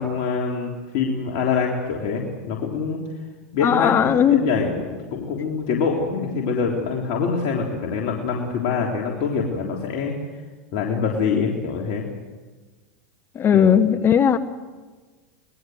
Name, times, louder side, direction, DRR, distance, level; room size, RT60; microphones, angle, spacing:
voice 1, 0.0-3.0 3.5-10.1 10.7-12.1 13.5-13.7, left 5 dB, 55° left, -1 dB, 3.7 m, -25 dB
voice 2, 3.6-4.4 13.3-14.4, left 8 dB, 30° left, 12 dB, 1.3 m, -17 dB
25.5 x 20.0 x 7.9 m, 1.3 s
hypercardioid pair, 105°, 7 cm